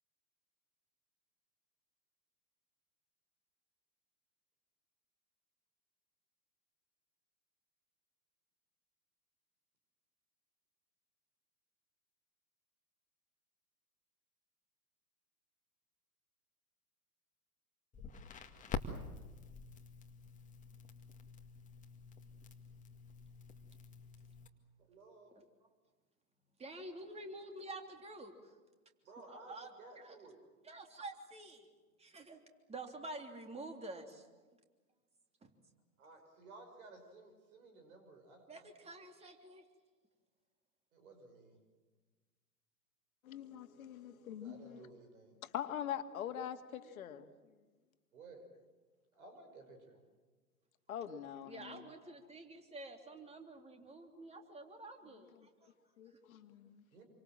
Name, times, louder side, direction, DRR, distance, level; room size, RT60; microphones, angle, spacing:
Crackle, 17.9-24.5, left 4 dB, 15° left, 2.1 m, -47 dB
voice 1, 24.8-25.3 29.0-30.4 36.0-38.7 40.9-41.6 44.4-45.4 48.1-48.5 49.1-50.0 56.9-57.0, right 3 dB, 65° right, 5.8 m, -56 dB
voice 2, 26.6-28.5 29.3-29.7 29.9-30.2 30.6-31.7 32.0-32.4 32.7-34.3 35.4-35.5 38.5-39.6 51.4-55.7, right 2 dB, 15° right, 3.3 m, -49 dB
voice 3, 43.2-44.9 45.4-47.3 50.9-51.9 55.4-56.8, left 9 dB, 65° left, 2.2 m, -44 dB
27.5 x 25.0 x 7.6 m
hypercardioid pair, 105°, 45 cm